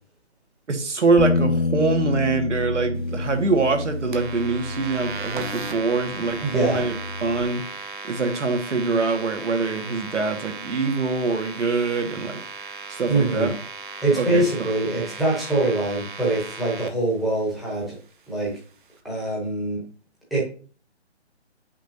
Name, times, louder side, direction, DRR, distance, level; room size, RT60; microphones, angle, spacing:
voice 1, 0.7-6.9 7.2-7.6 8.0-12.4 12.9-13.6 14.2-14.4, right 4 dB, 85° right, 5 dB, 1.9 m, -24 dB
Bass guitar, 1.2-7.4, left 3 dB, 40° left, 0.4 m, -28 dB
sound 1, 4.1-16.9, right 4 dB, 45° right, 1.1 m, -36 dB
voice 2, 6.4-6.8 13.1-13.5 14.0-18.0 18.3-18.6 19.0-19.8 20.3-20.4, right 2 dB, ahead, -4 dB, 0.9 m, -23 dB
8.7 x 6.0 x 2.8 m, 0.40 s
hypercardioid pair, 165°, 35 cm